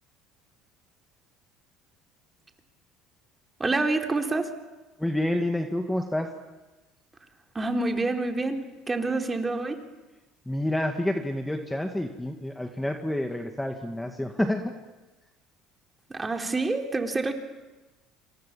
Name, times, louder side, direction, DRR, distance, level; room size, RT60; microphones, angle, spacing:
voice 1, 3.6-4.5 7.5-8.6 8.9-9.8 16.1-17.3, right 3 dB, 20° right, 3 dB, 3.7 m, -27 dB
voice 2, 5.0-6.3 10.5-14.7, left 1 dB, 5° left, 4 dB, 2.1 m, -28 dB
28.0 x 27.5 x 7.5 m, 1.1 s
supercardioid pair, 100°, 0 cm